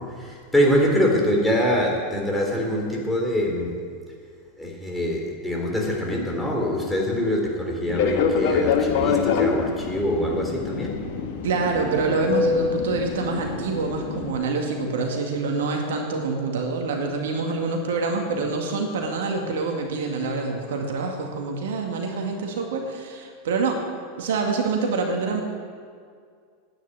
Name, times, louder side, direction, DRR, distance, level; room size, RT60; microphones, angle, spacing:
voice 1, 0.0-3.7 4.6-11.0, equal, 5° left, -1 dB, 3.7 m, -24 dB
Fixed-wing aircraft airplane, 7.9-14.3, left 5 dB, 60° left, 1.5 m, -25 dB
voice 2, 11.4-23.8 24.2-25.4, right 4 dB, 70° right, 2 dB, 2.0 m, -26 dB
10.0 x 9.8 x 9.3 m, 2.1 s
hypercardioid pair, 90°, 0 cm